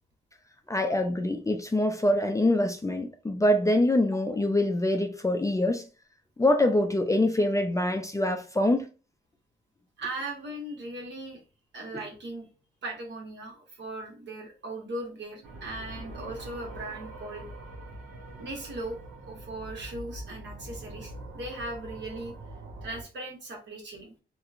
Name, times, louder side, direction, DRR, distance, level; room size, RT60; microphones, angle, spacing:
voice 1, 0.7-5.8 6.4-8.9 11.9-12.0, left 1 dB, 15° left, 0.4 m, -25 dB
voice 2, 10.0-11.4 11.7-12.5 12.8-17.5 18.4-19.0 19.3-22.3 22.8-24.1, right 2 dB, 60° right, 1.1 m, -38 dB
sound 1, 15.4-23.0, right 1 dB, 80° right, 0.8 m, -43 dB
2.8 x 2.1 x 2.4 m
supercardioid pair, 60°, 21 cm